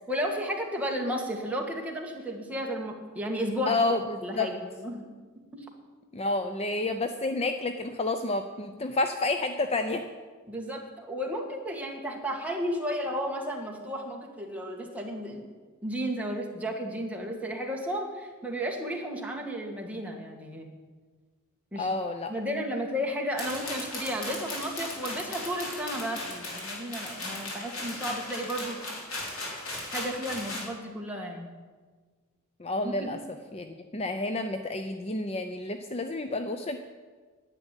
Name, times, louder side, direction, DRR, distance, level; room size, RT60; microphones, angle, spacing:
voice 1, 0.1-3.8 4.2-5.1 5.5-5.7 10.5-15.5 15.8-20.7 21.7-21.9 22.3-28.8 29.9-31.5 32.8-33.1, equal, 5° right, 0 dB, 1.8 m, -33 dB
voice 2, 3.7-4.5 6.1-10.0 21.8-22.3 32.6-33.2 33.5-36.8, left 2 dB, 25° left, 7 dB, 0.6 m, -30 dB
sound 1, 23.4-30.7, left 2 dB, 65° left, 3.8 m, -37 dB
10.5 x 8.4 x 9.9 m, 1.4 s
head